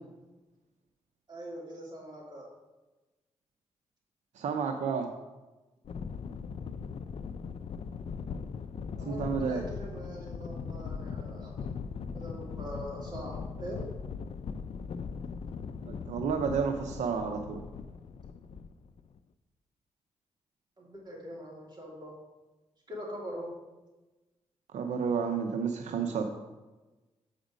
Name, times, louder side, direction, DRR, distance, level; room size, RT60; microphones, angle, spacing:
voice 1, 1.3-2.5 9.0-11.7 12.1-13.9 20.8-22.2 22.9-23.6, equal, 40° right, -4 dB, 2.8 m, -42 dB
voice 2, 4.4-5.1 9.1-9.6 15.8-17.6 24.7-26.3, right 6 dB, 85° right, 5 dB, 0.6 m, -31 dB
sound 1, 5.8-19.2, left 5 dB, 55° left, 0.4 m, -39 dB
8.1 x 5.1 x 5.1 m, 1.1 s
cardioid pair, 80°, 12 cm